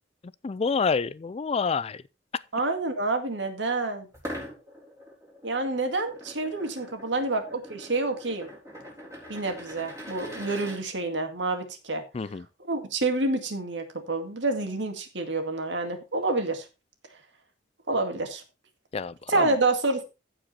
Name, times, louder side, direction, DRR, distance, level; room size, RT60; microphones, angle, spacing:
voice 1, 0.4-2.0 12.1-12.4 18.9-19.5, left 5 dB, 35° left, 0.4 m, -28 dB
voice 2, 2.5-4.1 5.4-8.5 9.3-12.0 12.7-16.7 17.9-18.4 19.3-20.0, right 2 dB, 70° right, 2.2 m, -28 dB
sound 1, 4.1-10.8, equal, 20° right, 4.0 m, -43 dB
15.0 x 5.0 x 4.3 m
head